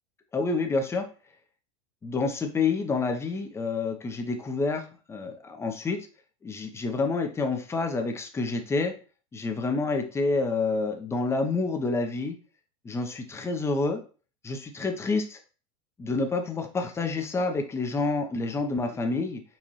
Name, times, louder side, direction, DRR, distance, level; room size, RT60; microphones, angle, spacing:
voice 1, 0.3-1.1 2.0-6.1 6.4-8.9 9.3-12.4 12.8-14.0 14.4-15.4 16.0-19.4, left 3 dB, 15° left, 5 dB, 0.7 m, -28 dB
4.1 x 2.5 x 3.0 m, 0.37 s
hypercardioid pair, 100°, 17 cm